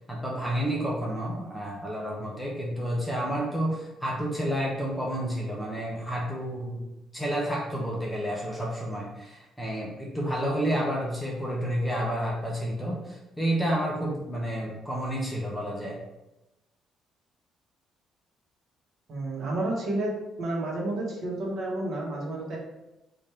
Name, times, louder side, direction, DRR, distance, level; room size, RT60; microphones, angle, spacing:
voice 1, 0.0-6.9 7.1-16.0, equal, 5° left, -3 dB, 0.6 m, -30 dB
voice 2, 19.1-20.1 20.4-22.6, right 2 dB, 45° right, -2 dB, 1.0 m, -30 dB
3.4 x 2.5 x 4.2 m, 0.97 s
cardioid pair, 165°, 0 cm